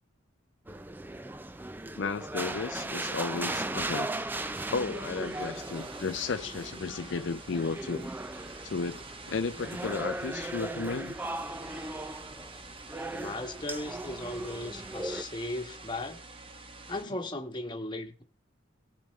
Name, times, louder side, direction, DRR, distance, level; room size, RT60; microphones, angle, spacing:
sound 1, 0.7-15.2, right 2 dB, 10° right, 0.4 m, -37 dB
voice 1, 2.0-4.1 4.7-8.1 8.6-11.1, left 4 dB, 60° left, 0.5 m, -34 dB
sound 2, 4.3-17.0, right 3 dB, 25° right, 1.0 m, -47 dB
voice 2, 13.1-16.2 16.9-18.2, left 2 dB, 20° left, 1.3 m, -37 dB
19.0 x 7.1 x 3.2 m
head